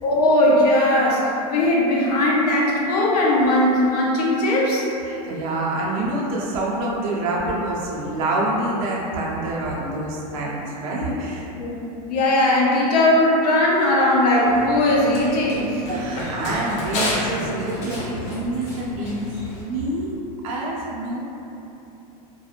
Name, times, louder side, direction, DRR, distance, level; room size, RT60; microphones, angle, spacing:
voice 1, 0.0-4.8 11.6-11.8 12.1-15.8, left 1 dB, 85° left, -3 dB, 0.6 m, -18 dB
voice 2, 5.0-11.5 15.9-20.1 20.4-21.3, right 1 dB, 60° right, -4 dB, 0.6 m, -26 dB
Run, 14.5-19.6, left 2 dB, 35° left, 0.5 m, -30 dB
2.4 x 2.2 x 2.8 m, 2.9 s
supercardioid pair, 160°, 20 cm